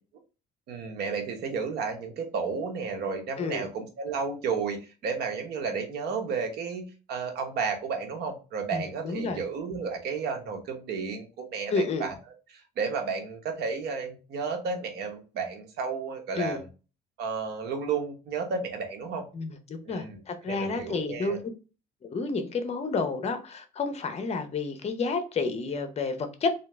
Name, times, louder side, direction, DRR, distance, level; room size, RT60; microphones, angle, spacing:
voice 1, 0.7-4.8 5.0-12.1 12.5-16.7 17.2-19.3 19.9-21.4, right 5 dB, 75° right, 1.1 m, -32 dB
voice 2, 3.4-3.7 8.7-9.4 11.7-12.1 16.3-16.6 19.3-21.4 22.1-26.5, left 4 dB, 40° left, 0.8 m, -30 dB
3.7 x 2.8 x 3.3 m
cardioid pair, 110°, 17 cm